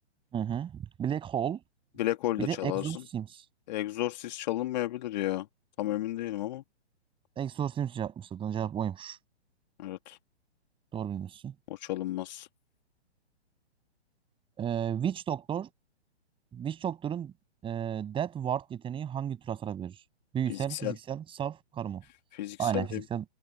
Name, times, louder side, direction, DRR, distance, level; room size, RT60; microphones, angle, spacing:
voice 1, 0.3-1.6 2.4-3.4 7.4-9.2 10.9-11.5 14.6-15.7 16.5-17.3 17.6-19.9 20.3-22.0 22.6-23.2, right 9 dB, 15° right, 6.7 m, -33 dB
voice 2, 2.0-2.9 3.7-5.5 5.8-6.6 9.8-10.2 11.7-12.5 20.5-20.9 22.3-23.0, left 15 dB, 40° left, 2.3 m, -32 dB
figure-of-eight pair, 120°, 34 cm